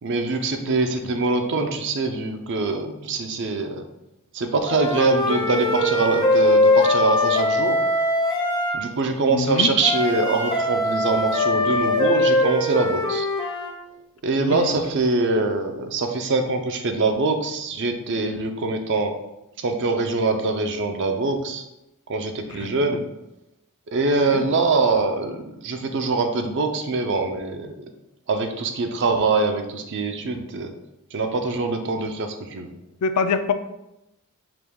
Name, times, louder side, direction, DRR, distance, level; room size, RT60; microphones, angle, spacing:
voice 1, 0.0-3.8 4.3-7.8 8.7-13.3 14.2-19.2 19.6-21.6 22.1-23.0 23.9-27.9 28.3-30.7 31.1-32.8, right 3 dB, 55° right, 6 dB, 0.5 m, -23 dB
Wind instrument woodwind instrument, 4.7-8.8 9.8-13.7, left 1 dB, 20° left, 0.5 m, -21 dB
voice 2, 9.3-9.7 14.4-14.7 22.6-23.0 24.3-24.5 30.2-30.3 33.0-33.5, left 5 dB, 75° left, 10 dB, 0.3 m, -26 dB
4.8 x 2.2 x 3.5 m, 0.89 s
head